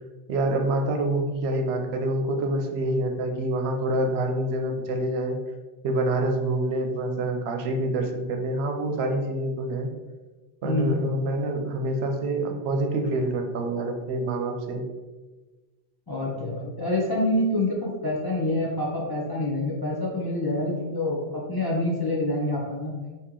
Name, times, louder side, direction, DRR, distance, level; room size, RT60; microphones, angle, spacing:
voice 1, 0.3-5.4 5.8-9.9 10.6-14.8, right 1 dB, 80° right, 3 dB, 0.8 m, -26 dB
voice 2, 10.6-11.2 16.1-22.9, left 1 dB, 30° left, -5 dB, 0.5 m, -26 dB
3.0 x 2.7 x 3.6 m, 1.3 s
omnidirectional pair, 1.1 m